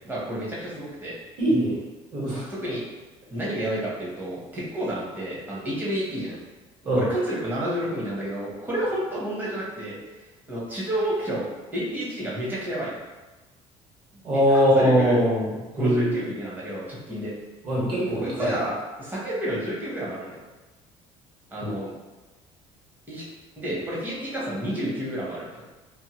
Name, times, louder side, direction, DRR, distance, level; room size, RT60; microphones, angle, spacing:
voice 1, 0.0-1.2 2.5-2.8 3.3-6.4 6.9-10.0 10.5-11.4 11.7-13.0 14.1-14.2 14.5-15.2 15.7-17.3 18.2-20.4 21.5-21.9 23.1-23.2 23.6-25.6, right 1 dB, 15° right, -6 dB, 0.9 m, -30 dB
voice 2, 1.4-1.8 2.1-2.4 6.8-7.1 14.2-15.5 15.8-16.1 17.6-18.5, equal, 40° right, -8 dB, 1.5 m, -21 dB
2.6 x 2.6 x 2.9 m, 1.1 s
cardioid pair, 140°, 12 cm